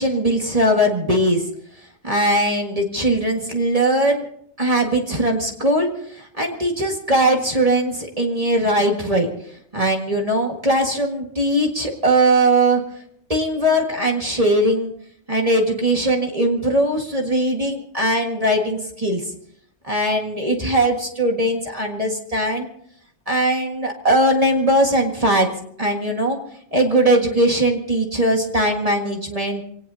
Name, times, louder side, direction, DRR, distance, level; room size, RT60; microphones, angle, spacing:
voice 1, 0.0-1.4 2.0-4.2 4.6-5.9 6.1-9.3 9.7-12.8 13.3-14.9 15.3-19.2 19.9-22.7 23.3-25.5 25.8-26.4 26.7-29.6, right 1 dB, 30° right, 1 dB, 1.9 m, -20 dB
24.5 x 18.5 x 2.8 m, 0.65 s
omnidirectional pair, 1.2 m